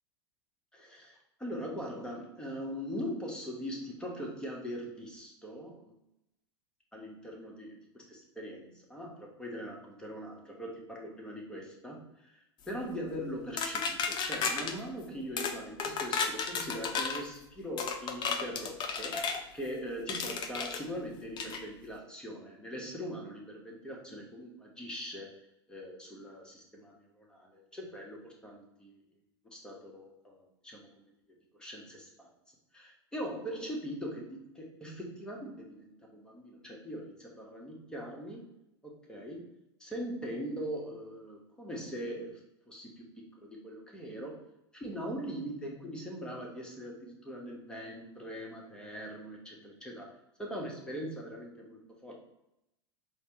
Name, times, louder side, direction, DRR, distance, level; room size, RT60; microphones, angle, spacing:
voice 1, 0.7-5.9 6.9-9.1 9.4-19.2 19.5-25.3 25.7-29.0 29.5-31.1 31.5-32.3 32.7-38.4 38.8-39.4 39.8-44.4 44.7-50.0 50.4-52.1, equal, 5° left, -2 dB, 1.0 m, -41 dB
sound 1, 13.6-14.7 15.4-15.5 15.8-17.2 17.8-19.4 20.1-20.8 21.4-21.6, left 5 dB, 30° left, 0.4 m, -33 dB
4.7 x 2.2 x 3.0 m, 0.84 s
hypercardioid pair, 95°, 15 cm